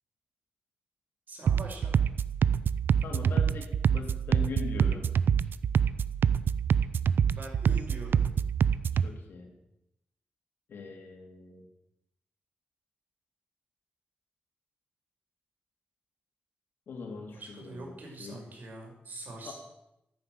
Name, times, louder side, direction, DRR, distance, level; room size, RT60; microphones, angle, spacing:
voice 1, 1.3-2.0 7.3-8.3 17.3-19.5, right 2 dB, 60° right, 0 dB, 5.4 m, -43 dB
sound 1, 1.5-9.1, right 7 dB, 80° right, 0.5 m, -26 dB
voice 2, 3.0-5.1 8.9-9.5 10.7-11.7 16.9-18.4 19.4-19.5, left 4 dB, 80° left, 3 dB, 3.2 m, -41 dB
14.0 x 9.5 x 8.0 m, 0.86 s
wide cardioid pair, 110°, 4 cm